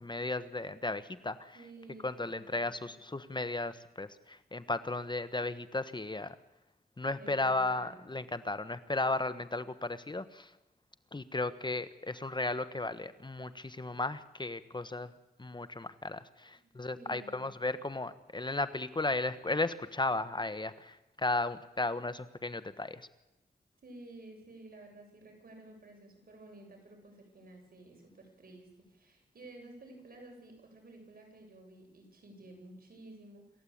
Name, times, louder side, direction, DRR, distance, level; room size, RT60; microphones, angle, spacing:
voice 1, 0.0-1.6 2.0-6.4 7.0-10.5 11.1-15.1 15.4-23.1, left 2 dB, 30° left, 13 dB, 1.2 m, -35 dB
voice 2, 1.5-2.9 7.1-8.0 16.5-17.8 23.8-33.6, right 2 dB, 65° right, 2 dB, 7.3 m, -53 dB
27.5 x 14.5 x 8.7 m, 0.97 s
cardioid pair, 60°, 16 cm